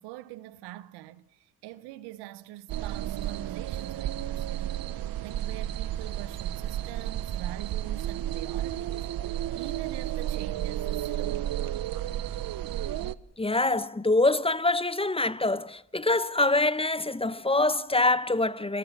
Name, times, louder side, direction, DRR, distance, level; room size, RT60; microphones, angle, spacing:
voice 1, 0.0-11.6, right 15 dB, 90° right, 1.1 m, -44 dB
sound 1, 2.7-13.2, right 12 dB, 65° right, 0.9 m, -32 dB
voice 2, 13.4-18.8, left 2 dB, 15° left, 0.8 m, -25 dB
25.5 x 23.0 x 7.3 m
supercardioid pair, 55°, 39 cm